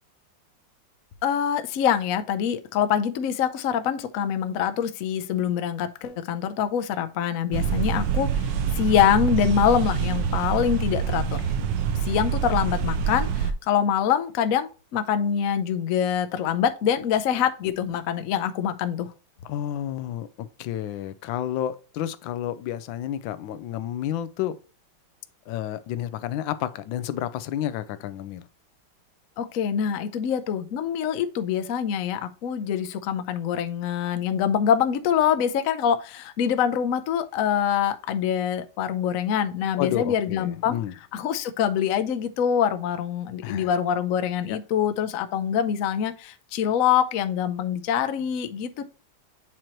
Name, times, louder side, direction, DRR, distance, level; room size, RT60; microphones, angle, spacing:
voice 1, 1.2-11.4 12.0-19.1 29.4-40.8 41.1-48.8, left 8 dB, 65° left, 0.9 m, -25 dB
sound 1, 7.5-13.5, right 7 dB, 70° right, 1.4 m, -26 dB
voice 2, 19.4-24.6 25.5-28.5 39.8-40.9 43.4-43.7 44.5-44.6, left 11 dB, 80° left, 1.3 m, -30 dB
7.8 x 4.4 x 2.9 m
omnidirectional pair, 2.1 m